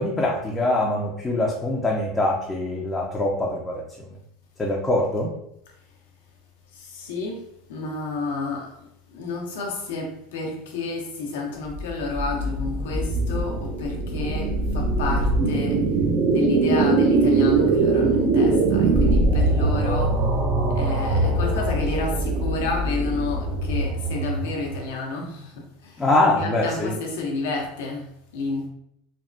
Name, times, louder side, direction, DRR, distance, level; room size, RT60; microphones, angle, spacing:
voice 1, 0.0-3.8 4.6-5.3 26.0-26.9, left 2 dB, 15° left, -3 dB, 0.5 m, -23 dB
voice 2, 6.7-16.0 16.3-20.3 20.7-26.1 26.4-28.7, left 3 dB, 80° left, 0 dB, 0.8 m, -30 dB
sound 1, 11.6-24.8, right 2 dB, 50° right, 0.6 m, -22 dB
3.3 x 2.1 x 2.6 m, 0.76 s
supercardioid pair, 105°, 0 cm